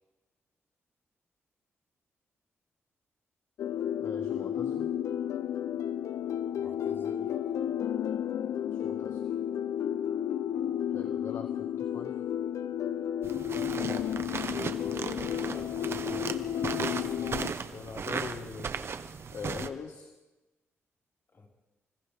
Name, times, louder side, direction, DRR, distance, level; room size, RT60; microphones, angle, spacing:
sound 1, 3.6-17.5, left 10 dB, 80° left, 0.6 m, -32 dB
voice 1, 4.0-4.9 8.7-9.3 10.9-12.2 17.1-18.9 19.3-20.1, left 5 dB, 65° left, 4 dB, 1.7 m, -42 dB
voice 2, 6.6-7.5 13.7-15.8 21.3-21.5, left 2 dB, 45° left, -1 dB, 5.1 m, -50 dB
sound 2, 13.2-19.7, right 5 dB, 55° right, 1.2 m, -36 dB
29.5 x 25.5 x 3.6 m, 1.1 s
cardioid pair, 70°, 5 cm